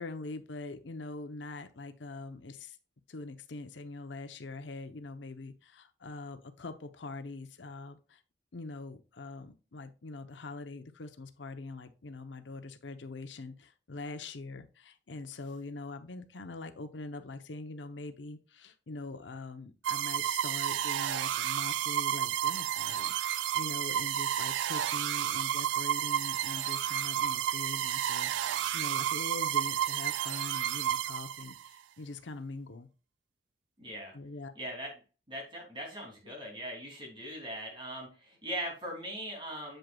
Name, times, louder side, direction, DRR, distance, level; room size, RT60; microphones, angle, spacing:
voice 1, 0.0-2.8 3.1-8.2 8.5-32.9 34.1-34.5, left 3 dB, 85° left, 8 dB, 0.8 m, -43 dB
sound 1, 19.8-31.7, right 11 dB, 90° right, 0.3 m, -31 dB
voice 2, 33.8-34.1 34.5-34.9 35.3-39.8, right 1 dB, 30° right, 0 dB, 2.9 m, -40 dB
7.9 x 7.5 x 2.3 m, 0.33 s
head